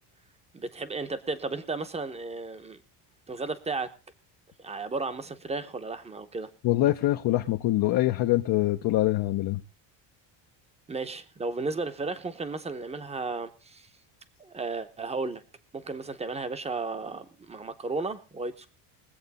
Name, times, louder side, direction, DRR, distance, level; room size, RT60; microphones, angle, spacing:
voice 1, 0.5-2.8 3.3-3.9 4.6-6.5 10.9-13.9 14.4-15.4 15.7-18.7, right 3 dB, 15° right, 0.9 m, -34 dB
voice 2, 6.6-9.6, left 16 dB, 50° left, 0.8 m, -24 dB
22.0 x 7.9 x 4.1 m
cardioid pair, 145°, 49 cm